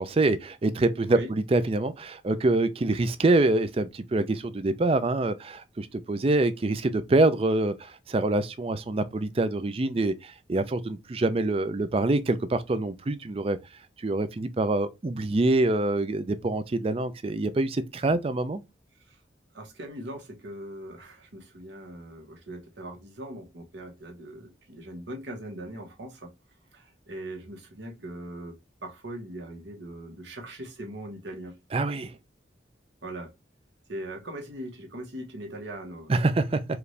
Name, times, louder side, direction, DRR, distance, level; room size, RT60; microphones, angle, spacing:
voice 1, 0.0-13.6 14.0-18.6 31.7-32.1 36.1-36.6, right 2 dB, 30° right, 0.4 m, -25 dB
voice 2, 19.5-26.3 26.7-28.6 28.8-31.5 33.0-33.3 33.9-36.3, right 1 dB, 80° right, 1.4 m, -40 dB
4.8 x 2.6 x 3.3 m
head